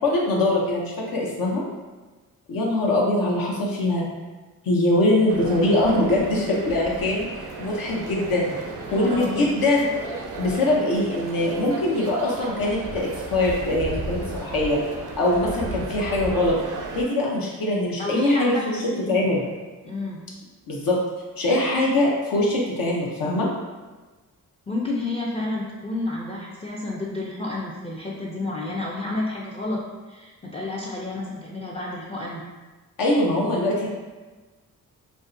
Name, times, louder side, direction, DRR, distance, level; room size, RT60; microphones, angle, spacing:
voice 1, 0.0-1.6 2.5-4.0 4.6-7.3 7.6-8.5 8.9-9.9 10.4-14.8 15.2-16.6 16.9-18.8 19.1-19.4 20.7-21.0 21.4-23.5 33.0-33.9, left 1 dB, 75° left, -3 dB, 0.6 m, -22 dB
sound 1, 5.3-17.0, right 3 dB, 60° right, 0.5 m, -34 dB
voice 2, 8.9-9.5 18.0-19.3 19.8-20.2 24.7-32.4, left 2 dB, 20° left, -4 dB, 0.4 m, -30 dB
2.5 x 2.0 x 2.5 m, 1.3 s
cardioid pair, 55°, 36 cm